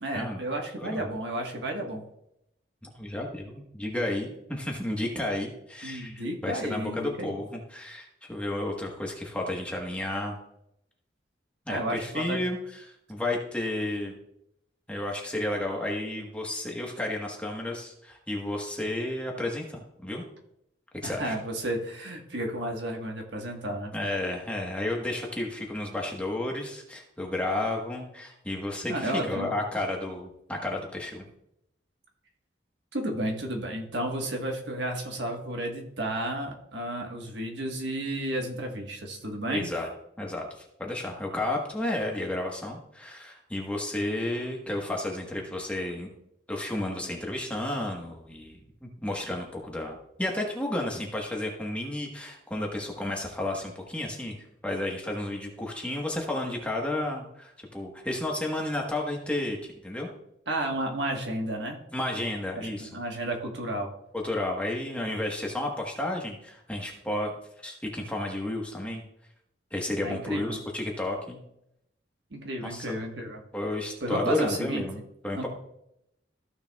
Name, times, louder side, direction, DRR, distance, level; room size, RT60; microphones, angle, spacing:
voice 1, 0.0-2.0 5.8-7.3 11.7-12.4 21.0-23.9 28.9-29.5 32.9-39.7 60.5-61.8 62.5-63.9 70.0-70.6 72.3-73.4 74.0-74.8 75.4-75.5, right 1 dB, 65° right, 2 dB, 1.4 m, -32 dB
voice 2, 0.8-1.1 2.9-10.4 11.7-14.2 14.9-20.2 21.0-21.3 23.9-31.2 39.5-39.9 40.2-46.1 46.5-60.1 61.9-63.0 64.1-67.3 67.6-69.0 69.7-71.4 72.6-72.9 73.5-75.0 75.2-75.5, left 1 dB, 5° left, -1 dB, 1.2 m, -32 dB
14.5 x 6.7 x 2.3 m, 0.79 s
head